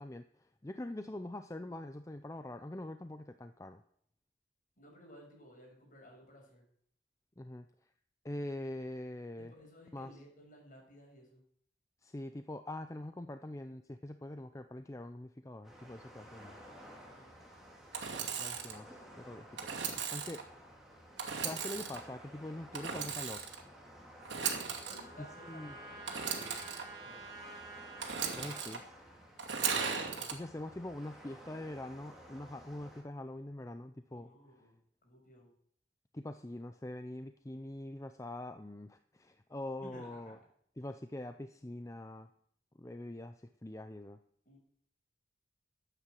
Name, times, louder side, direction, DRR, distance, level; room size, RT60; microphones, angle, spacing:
voice 1, 0.0-3.8 7.4-7.9 8.2-9.5 9.9-10.2 12.0-16.6 18.4-20.5 21.4-23.5 25.4-25.8 28.0-28.9 30.3-34.3 36.1-40.4 40.8-42.3 42.8-44.2, left 1 dB, 15° left, 9 dB, 0.5 m, -44 dB
voice 2, 4.8-6.6 9.4-11.4 17.0-17.4 24.4-25.6 25.9-27.2 34.1-34.8 35.0-35.5 39.8-40.4 44.4-44.6, equal, 45° left, 0 dB, 6.1 m, -56 dB
sound 1, 15.6-33.0, equal, ahead, 3.2 m, -54 dB
Engine / Sawing, 17.9-18.8 19.6-20.4 21.2-22.0 22.7-23.6 24.2-25.0 26.1-26.8 28.0-28.8 29.4-30.3, right 6 dB, 80° right, 2.4 m, -37 dB
Trumpet, 24.2-28.7, right 3 dB, 25° right, 3.6 m, -50 dB
13.0 x 9.2 x 7.5 m, 0.65 s
head